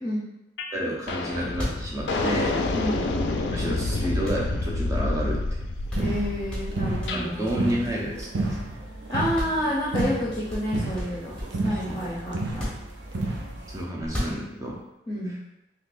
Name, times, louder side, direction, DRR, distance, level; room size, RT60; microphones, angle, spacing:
sound 1, 0.6-0.8 1.1-7.3, left 2 dB, 80° left, 0.4 m, -28 dB
voice 1, 0.7-2.6 3.5-5.4 7.1-8.6 11.7-12.0 13.7-14.8, equal, 20° right, -3 dB, 0.6 m, -30 dB
sound 2, 1.2-1.3 1.5-3.7 4.2-5.3 5.6-5.7 5.9-6.2 6.5-8.7 9.0-9.1 9.3-9.6 10.0-11.7 12.4-13.4 14.0-14.8, equal, 5° left, 1.0 m, -35 dB
voice 2, 6.0-7.8 9.1-11.3 11.6-12.7 15.1-15.4, equal, 25° left, -8 dB, 0.6 m, -29 dB
sound 3, 6.0-13.8, right 2 dB, 80° right, 0.6 m, -31 dB
3.8 x 2.9 x 2.5 m, 0.92 s
head